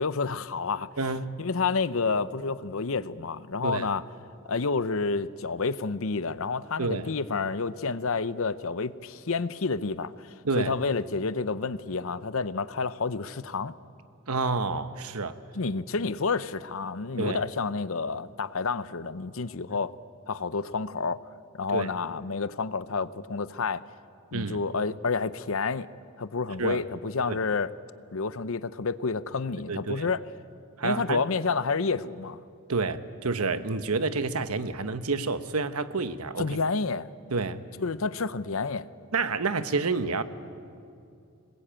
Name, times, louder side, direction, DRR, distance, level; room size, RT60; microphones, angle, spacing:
voice 1, 0.0-0.9 1.4-4.0 4.5-13.7 15.5-19.9 20.3-21.2 21.5-23.8 24.3-25.9 26.2-27.7 28.1-30.2 30.8-32.4 36.4-37.1 37.8-38.9, left 4 dB, 65° left, 0.8 m, -29 dB
voice 2, 1.0-1.4 3.6-3.9 6.8-7.1 10.4-10.7 14.3-15.4 17.2-17.4 21.7-21.9 24.3-24.6 26.6-26.8 27.3-27.4 29.7-30.1 30.8-31.2 32.7-36.6 37.3-37.6 39.1-40.2, right 4 dB, 85° right, 1.1 m, -29 dB
26.0 x 20.5 x 8.9 m
head